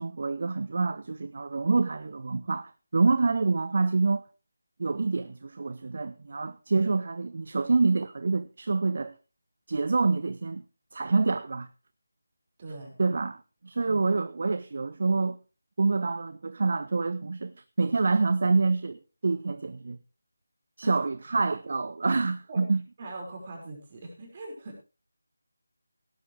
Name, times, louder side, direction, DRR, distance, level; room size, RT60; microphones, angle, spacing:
voice 1, 0.0-4.2 4.8-9.2 9.7-10.6 10.9-11.7 13.0-15.4 15.8-20.0 20.8-22.8, right 3 dB, 45° right, 0.7 m, -27 dB
voice 2, 12.6-13.0 13.8-14.0 20.8-20.9 22.5-22.7 23.0-24.8, right 2 dB, 30° right, 5.5 m, -41 dB
17.5 x 11.5 x 3.4 m
figure-of-eight pair, 160°, 0 cm